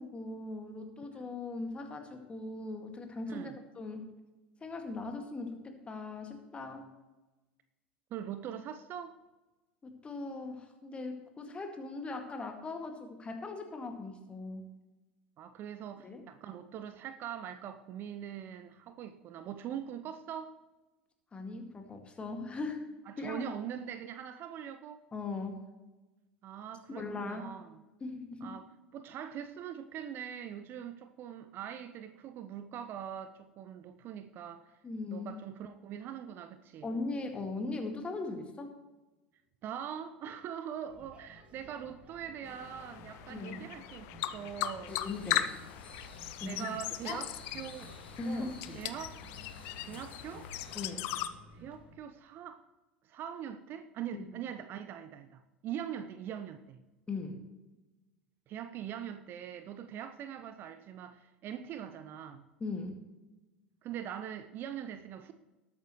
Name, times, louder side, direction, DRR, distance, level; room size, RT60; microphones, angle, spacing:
voice 1, 0.0-4.1 4.6-6.9 9.8-14.7 16.0-16.2 21.3-22.9 23.2-23.4 25.1-25.7 26.9-27.5 28.0-28.6 34.8-35.3 36.8-38.7 43.3-43.6 44.9-45.5 46.4-46.7 47.1-47.2 48.2-48.8 50.7-51.1 54.1-54.3 57.1-57.4 62.6-63.0, left 3 dB, 20° left, 4 dB, 2.0 m, -39 dB
voice 2, 3.3-3.6 8.1-9.2 15.4-20.5 23.1-25.0 26.4-27.8 28.4-34.8 35.1-36.9 39.6-45.0 46.4-47.9 48.2-49.2 49.8-50.5 51.5-52.6 53.0-56.8 58.5-62.5 63.8-65.3, right 9 dB, 40° right, 10 dB, 0.7 m, -42 dB
sound 1, 40.9-51.9, left 1 dB, 20° right, 3.2 m, -55 dB
sound 2, 42.4-51.3, left 13 dB, 50° left, 0.6 m, -38 dB
sound 3, 44.9-50.9, left 3 dB, 75° left, 2.1 m, -52 dB
19.5 x 8.7 x 3.1 m, 1.1 s
figure-of-eight pair, 75°, 6 cm